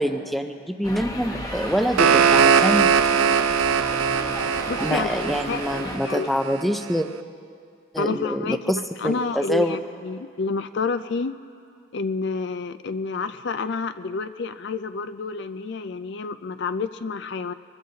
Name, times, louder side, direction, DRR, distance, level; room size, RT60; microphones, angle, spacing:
voice 1, 0.0-2.9 4.8-7.1 7.9-8.8 9.0-9.8, equal, ahead, 6 dB, 0.5 m, -25 dB
sound 1, 0.8-6.0, left 1 dB, 15° left, 1.0 m, -34 dB
sound 2, 1.6-6.6, right 7 dB, 80° right, 0.4 m, -21 dB
voice 2, 4.4-6.3 8.0-8.6 9.0-11.4 11.9-17.5, left 4 dB, 55° left, 12 dB, 0.4 m, -29 dB
23.0 x 21.0 x 2.8 m, 2.3 s
head